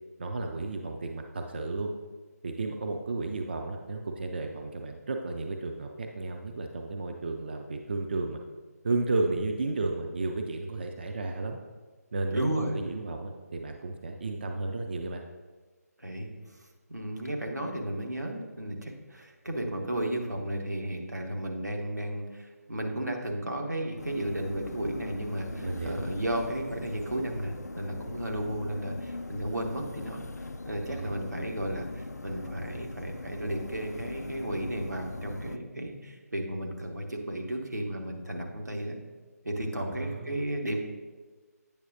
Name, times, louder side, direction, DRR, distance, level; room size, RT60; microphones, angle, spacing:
voice 1, 0.2-1.9 2.4-8.4 8.8-11.6 12.1-15.2 25.6-26.0 30.9-31.1 39.7-40.4, right 3 dB, 40° right, 4 dB, 0.3 m, -33 dB
voice 2, 12.3-12.8 16.0-16.3 16.9-38.9 39.4-40.8, right 1 dB, 85° right, 1 dB, 1.1 m, -34 dB
sound 1, 24.0-35.6, left 2 dB, 75° left, 0.4 m, -41 dB
8.5 x 6.1 x 2.6 m, 1.4 s
figure-of-eight pair, 150°, 9 cm